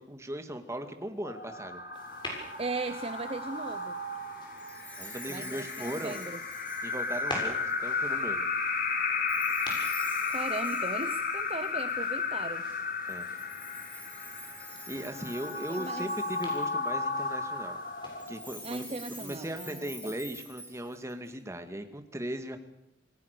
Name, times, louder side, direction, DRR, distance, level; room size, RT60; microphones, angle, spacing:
voice 1, 0.0-1.8 5.0-6.2 6.8-8.5 13.1-13.3 14.9-17.8 18.3-18.8 19.2-22.6, right 1 dB, 15° right, 7 dB, 2.2 m, -38 dB
sound 1, 1.2-18.6, left 4 dB, 55° left, 3.4 m, -34 dB
sound 2, 1.9-19.2, left 1 dB, 25° left, 7.2 m, -47 dB
voice 2, 2.6-3.9 5.3-6.4 10.3-12.6 15.7-16.1 18.6-19.9, right 3 dB, 35° right, 10 dB, 0.9 m, -38 dB
Chime, 4.6-7.9 9.3-12.1 13.1-16.9 18.1-21.3, left 1 dB, 10° left, 5.0 m, -48 dB
27.5 x 19.5 x 6.8 m, 0.85 s
head